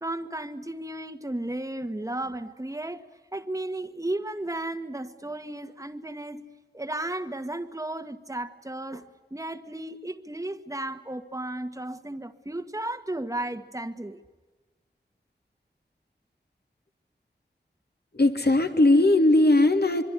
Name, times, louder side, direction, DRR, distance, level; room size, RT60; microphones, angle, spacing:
voice 1, 0.0-6.5 6.7-14.2, right 1 dB, 15° right, 1.6 m, -34 dB
voice 2, 18.1-20.0, left 2 dB, 60° left, 3.1 m, -19 dB
26.5 x 23.0 x 9.6 m
wide cardioid pair, 45°, 18 cm